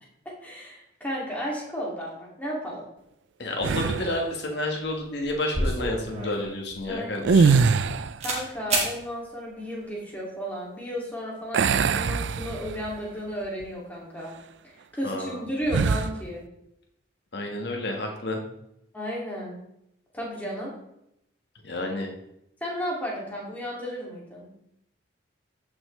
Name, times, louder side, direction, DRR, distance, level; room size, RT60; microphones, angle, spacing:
voice 1, 0.2-2.8 6.9-7.3 8.2-14.3 14.6-16.5 18.9-19.6 20.1-20.7 22.6-24.5, equal, 10° left, -4 dB, 2.4 m, -34 dB
voice 2, 3.4-7.6 15.0-15.4 17.3-18.4 21.6-22.1, left 1 dB, 55° left, 1 dB, 1.5 m, -30 dB
sound 1, 3.6-4.3 7.2-8.3 11.5-13.0 13.4-13.6 15.7-16.2, right 5 dB, 65° right, 0.4 m, -22 dB
sound 2, 5.5-7.9 8.2-8.4 8.7-8.9, right 2 dB, 35° right, 2.1 m, -29 dB
15.0 x 6.1 x 3.2 m, 0.80 s
head